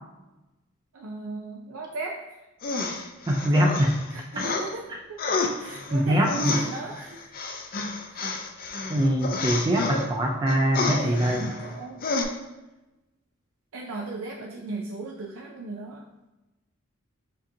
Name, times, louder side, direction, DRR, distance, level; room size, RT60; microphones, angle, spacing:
voice 1, 0.9-2.4 4.1-5.3 5.6-7.2 8.1-8.3 11.0-12.0 13.7-16.1, right 3 dB, 80° right, -1 dB, 0.5 m, -37 dB
sound 1, 2.6-4.7 5.2-10.1 10.5-11.8 12.0-12.2, left 3 dB, 45° left, 0.5 m, -30 dB
voice 2, 3.3-4.0 5.9-6.6 8.9-11.4, equal, 20° right, 0 dB, 0.4 m, -23 dB
7.3 x 2.7 x 2.7 m, 1.0 s
head